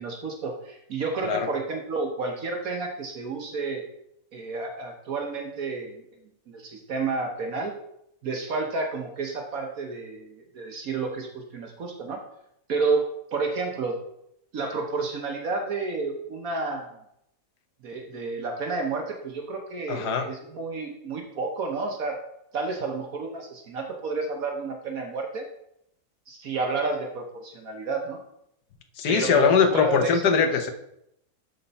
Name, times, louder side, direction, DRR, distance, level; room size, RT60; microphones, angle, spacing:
voice 1, 0.0-3.8 4.3-6.0 6.5-7.7 8.2-12.2 12.7-14.0 14.5-17.0 17.8-22.2 22.5-25.5 26.3-28.2 29.1-30.5, right 3 dB, 65° right, 2 dB, 1.4 m, -30 dB
voice 2, 19.9-20.3 29.0-30.7, left 6 dB, 80° left, 7 dB, 1.4 m, -21 dB
12.5 x 4.5 x 4.1 m, 0.79 s
omnidirectional pair, 1.7 m